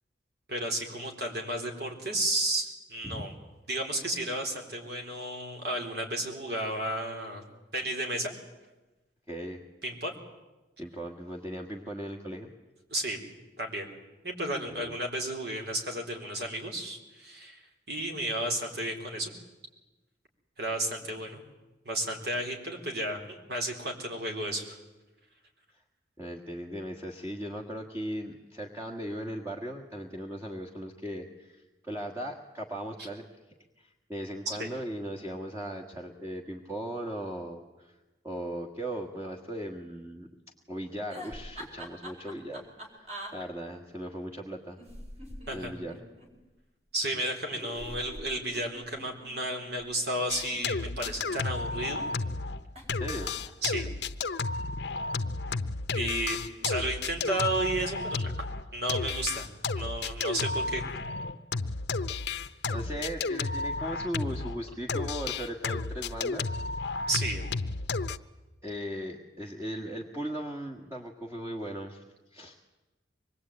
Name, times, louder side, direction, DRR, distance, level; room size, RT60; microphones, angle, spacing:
voice 1, 0.5-3.3 3.7-7.4 7.7-8.3 9.8-10.1 12.9-13.2 13.6-13.9 14.2-17.6 17.9-19.3 20.6-21.4 21.9-24.8 34.5-34.7 45.5-45.7 46.9-52.1 53.6-53.9 55.9-58.3 58.7-59.5 59.8-60.8 62.7-62.8 67.1-67.4, right 1 dB, 60° right, 3 dB, 4.1 m, -33 dB
voice 2, 9.3-9.6 10.8-12.5 14.7-14.9 26.2-33.2 33.8-37.9 38.2-40.3 40.7-42.6 42.9-44.8 45.5-46.0 52.9-53.3 56.2-56.3 62.4-66.6 68.6-72.0 72.3-72.6, equal, 15° right, -1 dB, 1.6 m, -38 dB
sound 1, 41.1-43.3 44.8-46.3 47.6-49.9 50.7-51.7 52.8-53.0 53.2-53.7, equal, 35° right, 4.3 m, -44 dB
sound 2, 50.3-52.6 52.9-64.6 64.9-68.2, left 3 dB, 65° left, 0.8 m, -32 dB
24.5 x 21.0 x 8.8 m, 1.1 s
head